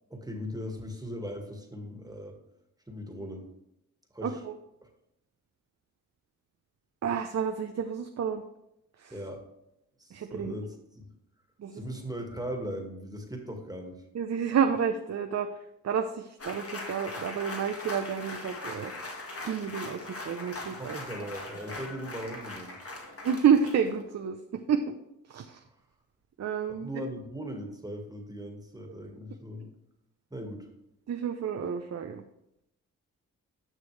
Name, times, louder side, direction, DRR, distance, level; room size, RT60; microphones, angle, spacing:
voice 1, 0.1-2.4 2.9-3.5 4.1-4.4 4.8-4.9 9.1-9.4 10.0-11.1 11.7-14.0 20.7-22.8 26.7-29.7 30.3-30.7, equal, 10° right, 3 dB, 1.8 m, -39 dB
voice 2, 4.2-4.5 7.0-8.4 9.0-9.1 10.1-10.5 11.6-11.8 14.1-15.5 15.8-18.9 19.3-21.0 23.2-24.9 25.3-25.6 26.4-26.9 31.1-32.2, right 7 dB, 50° right, 6 dB, 0.7 m, -29 dB
sound 1, 16.4-24.0, left 2 dB, 40° left, 1.7 m, -40 dB
9.9 x 6.1 x 3.3 m, 0.83 s
cardioid pair, 55°, 34 cm